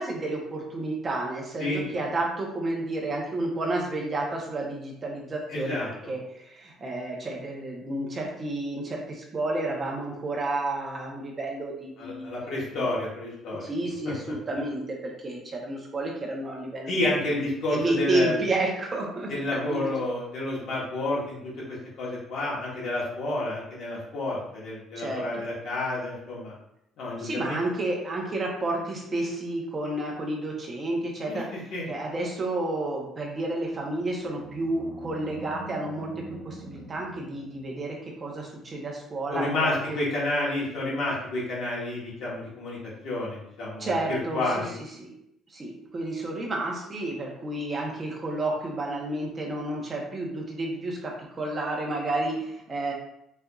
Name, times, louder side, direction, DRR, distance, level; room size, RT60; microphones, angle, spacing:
voice 1, 0.0-12.3 12.8-12.9 13.6-17.3 17.7-19.9 25.0-25.4 27.2-40.0 43.8-44.6 45.0-45.1 45.5-52.9, right 2 dB, 20° right, -1 dB, 0.7 m, -31 dB
voice 2, 5.5-5.9 12.0-13.6 16.9-18.3 19.3-26.5 27.0-27.6 31.3-31.4 31.7-31.8 39.3-42.8 43.0-44.7, left 2 dB, 55° left, -6 dB, 0.9 m, -30 dB
Animal, 33.7-38.1, right 1 dB, 5° left, 1.0 m, -45 dB
4.2 x 2.5 x 2.3 m, 0.78 s
cardioid pair, 175°, 0 cm